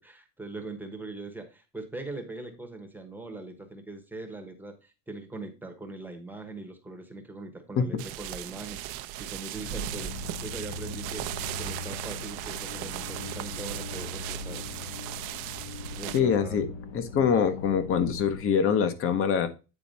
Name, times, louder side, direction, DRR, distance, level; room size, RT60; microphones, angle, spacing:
voice 1, 0.0-11.3 11.6-14.7 15.9-16.6 17.3-17.6, right 2 dB, 5° right, 3 dB, 1.1 m, -41 dB
sound 1, 8.0-16.2, right 14 dB, 60° right, 0.8 m, -37 dB
sound 2, 9.6-18.4, left 3 dB, 65° left, 1.4 m, -40 dB
voice 2, 16.1-16.7 16.9-19.5, left 7 dB, 30° left, 11 dB, 1.0 m, -24 dB
9.2 x 4.3 x 4.0 m, 0.30 s
cardioid pair, 155°, 42 cm